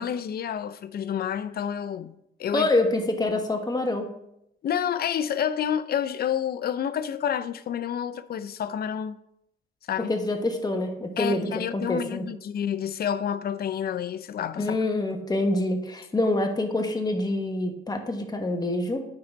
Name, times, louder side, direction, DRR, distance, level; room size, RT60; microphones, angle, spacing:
voice 1, 0.0-2.1 2.4-2.7 4.6-9.2 9.9-10.1 11.2-14.8, left 9 dB, 50° left, 0.5 m, -29 dB
voice 2, 2.5-4.1 10.1-12.3 14.6-19.0, left 2 dB, 20° left, 1.2 m, -26 dB
9.4 x 4.0 x 4.5 m
cardioid pair, 90°, 20 cm